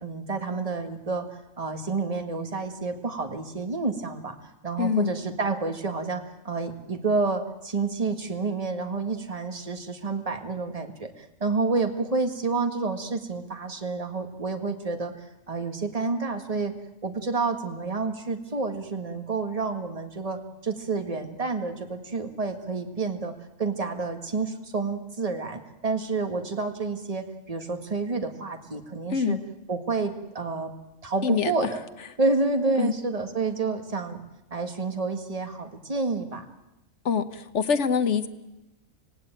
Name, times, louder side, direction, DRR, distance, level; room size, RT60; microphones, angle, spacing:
voice 1, 0.0-1.3 1.6-4.4 4.6-15.1 15.5-16.7 17.0-23.3 23.6-29.4 29.7-30.7 31.0-31.8 32.2-34.2 34.5-36.4, right 3 dB, 25° right, 6 dB, 1.8 m, -29 dB
voice 2, 4.8-5.1 29.1-29.4 31.2-31.7 32.8-32.9 37.0-38.3, left 6 dB, 60° left, 10 dB, 1.4 m, -25 dB
26.0 x 17.0 x 9.2 m, 0.97 s
omnidirectional pair, 1.4 m